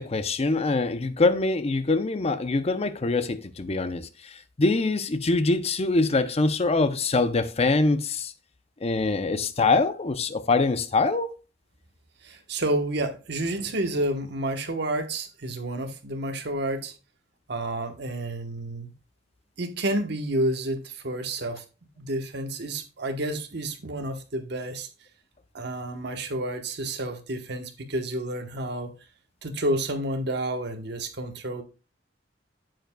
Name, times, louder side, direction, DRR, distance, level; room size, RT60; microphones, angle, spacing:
voice 1, 0.0-8.3 8.8-11.3, left 3 dB, 35° left, 0.6 m, -24 dB
voice 2, 12.2-16.9 17.5-18.9 19.6-21.6 22.0-24.9 25.5-28.9 29.4-31.6, right 1 dB, 65° right, 1.1 m, -30 dB
9.0 x 7.7 x 2.2 m
head